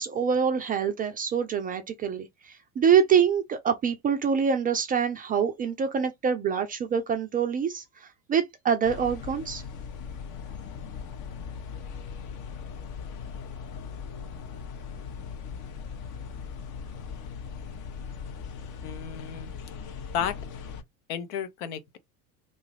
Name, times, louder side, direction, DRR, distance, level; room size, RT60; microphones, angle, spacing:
voice 1, 0.0-7.8 8.3-9.6, right 7 dB, 20° right, 0.3 m, -25 dB
sound 1, 8.8-20.8, left 6 dB, 45° left, 0.7 m, -39 dB
voice 2, 18.8-19.5 20.1-20.4 21.1-22.0, left 8 dB, 75° left, 0.7 m, -32 dB
2.6 x 2.3 x 3.2 m
hypercardioid pair, 75°, 46 cm